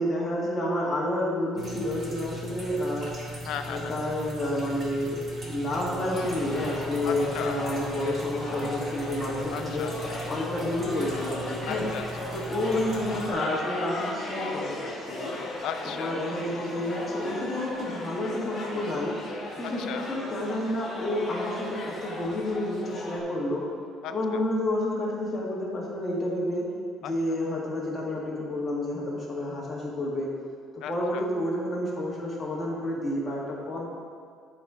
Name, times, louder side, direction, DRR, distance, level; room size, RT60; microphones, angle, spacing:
voice 1, 0.0-3.1 3.7-5.2 5.5-9.9 10.3-11.9 12.3-15.4 16.0-19.2 19.6-23.7 24.1-26.6 27.0-30.3 30.7-33.9, left 1 dB, 15° left, -5 dB, 1.7 m, -30 dB
sound 1, 1.6-13.3, right 1 dB, 25° right, 1.4 m, -39 dB
voice 2, 3.5-4.0 7.0-7.6 9.5-10.2 11.7-12.3 15.6-16.2 19.6-20.0 24.0-24.4 27.0-27.1 30.8-31.2, left 8 dB, 65° left, 8 dB, 0.5 m, -36 dB
sound 2, 6.0-23.2, left 2 dB, 30° left, 1.3 m, -37 dB
10.5 x 4.2 x 5.0 m, 2.1 s
cardioid pair, 155°, 0 cm